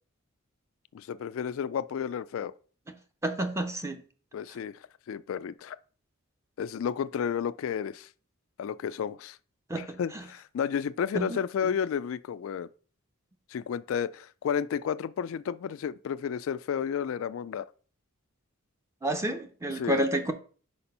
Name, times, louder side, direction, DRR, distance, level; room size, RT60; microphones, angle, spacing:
voice 1, 0.9-2.5 4.3-4.8 5.1-5.8 6.6-8.1 8.6-9.4 9.7-12.7 13.5-17.7 19.8-20.1, left 7 dB, 65° left, 0.3 m, -32 dB
voice 2, 3.2-4.0 9.7-10.2 11.1-11.4 19.0-20.3, right 1 dB, 15° right, 0.6 m, -30 dB
5.1 x 4.3 x 5.3 m
head